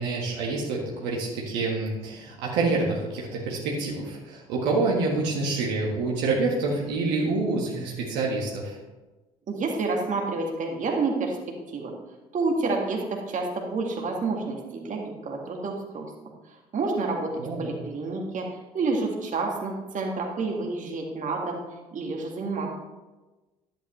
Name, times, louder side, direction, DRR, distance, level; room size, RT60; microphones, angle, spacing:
voice 1, 0.0-8.8 17.4-17.8, right 3 dB, 65° right, -3 dB, 1.7 m, -27 dB
voice 2, 9.5-11.4 11.7-11.9 12.3-16.1 16.5-21.6 21.9-22.7, right 3 dB, 45° right, 1 dB, 2.0 m, -29 dB
11.0 x 8.6 x 3.2 m, 1.1 s
hypercardioid pair, 55°, 19 cm